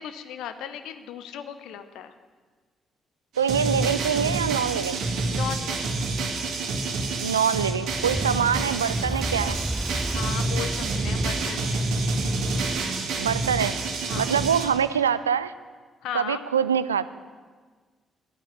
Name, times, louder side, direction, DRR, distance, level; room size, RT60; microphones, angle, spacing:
voice 1, 0.0-2.1 5.3-6.0 10.0-11.9 14.0-14.4 16.0-16.4, left 9 dB, 70° left, 10 dB, 0.8 m, -36 dB
sound 1, 3.3-14.7, right 3 dB, 65° right, 1.7 m, -28 dB
voice 2, 3.4-5.0 7.2-9.6 13.2-13.8 14.2-15.5 16.1-17.1, right 8 dB, 90° right, 15 dB, 0.3 m, -24 dB
Fire, 7.9-12.4, right 1 dB, 5° right, 0.4 m, -33 dB
9.2 x 9.0 x 9.7 m, 1.5 s
figure-of-eight pair, 40°, 0 cm